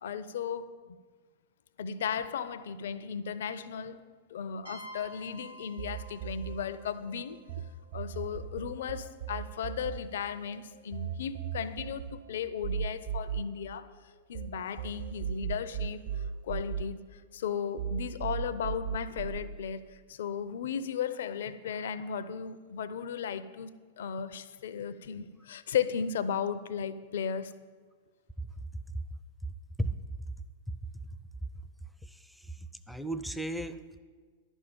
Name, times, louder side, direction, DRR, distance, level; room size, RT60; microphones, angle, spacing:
voice 1, 0.0-0.7 1.8-4.0 4.3-7.4 7.9-13.9 14.3-27.5, left 7 dB, 65° left, 14 dB, 0.6 m, -35 dB
sound 1, 4.6-8.3, right 1 dB, 85° right, 4.1 m, -51 dB
sound 2, 5.8-7.6 7.9-14.5 14.8-17.5 17.8-19.4, right 8 dB, 55° right, 1.4 m, -37 dB
voice 2, 32.0-34.0, right 1 dB, ahead, 12 dB, 0.5 m, -36 dB
11.0 x 6.4 x 8.8 m, 1.5 s
figure-of-eight pair, 100°, 0 cm